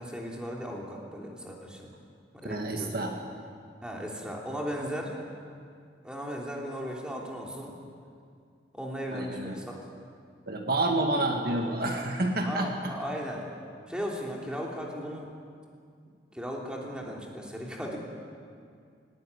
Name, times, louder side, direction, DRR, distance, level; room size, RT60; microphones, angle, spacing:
voice 1, 0.0-1.9 2.3-3.1 3.8-5.1 6.0-7.7 8.7-9.8 10.7-10.8 12.4-13.4 13.9-15.3 16.3-18.0, equal, 5° right, -2 dB, 3.3 m, -36 dB
voice 2, 2.4-3.1 9.1-9.6 10.5-12.9, right 2 dB, 55° right, 2 dB, 1.8 m, -29 dB
19.0 x 18.5 x 9.7 m, 2.3 s
head